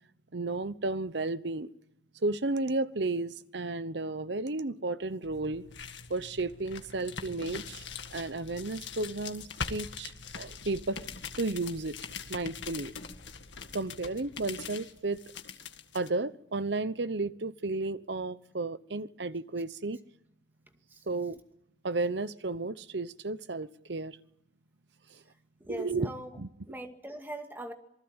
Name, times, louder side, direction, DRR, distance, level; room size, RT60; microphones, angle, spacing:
voice 1, 0.3-1.7 2.2-5.6 6.1-7.8 8.1-11.0 11.4-11.9 12.3-12.9 13.7-15.2 15.9-20.0 21.1-21.4 21.8-24.2 25.7-26.1 26.4-26.5, right 3 dB, 65° right, 1.0 m, -33 dB
sound 1, 5.2-16.1, left 5 dB, 75° left, 1.8 m, -42 dB
voice 2, 25.6-26.4 26.7-27.7, right 1 dB, 10° right, 2.2 m, -41 dB
27.0 x 20.0 x 8.9 m
head